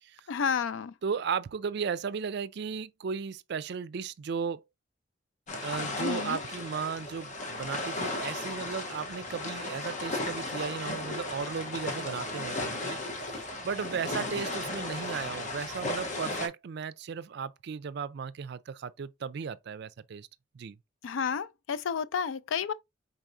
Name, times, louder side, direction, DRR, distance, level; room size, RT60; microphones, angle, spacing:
voice 1, 0.3-0.9 6.0-6.4 21.0-22.7, left 6 dB, 85° left, 0.4 m, -31 dB
voice 2, 1.0-4.6 5.6-13.0 13.3-20.3 20.5-20.8, right 6 dB, 60° right, 0.4 m, -35 dB
sound 1, 5.5-16.5, left 2 dB, 40° left, 1.0 m, -35 dB
4.7 x 3.9 x 2.6 m
head